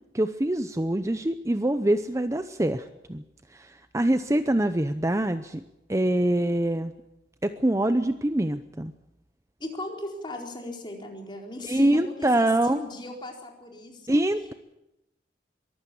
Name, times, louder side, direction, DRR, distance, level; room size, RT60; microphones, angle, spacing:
voice 1, 0.1-3.2 3.5-5.6 5.9-6.9 7.4-8.9 11.6-12.8 14.1-14.5, right 1 dB, 15° right, 10 dB, 0.7 m, -24 dB
voice 2, 9.6-14.2, left 1 dB, 25° left, 1 dB, 4.3 m, -38 dB
23.0 x 15.0 x 8.5 m, 0.93 s
head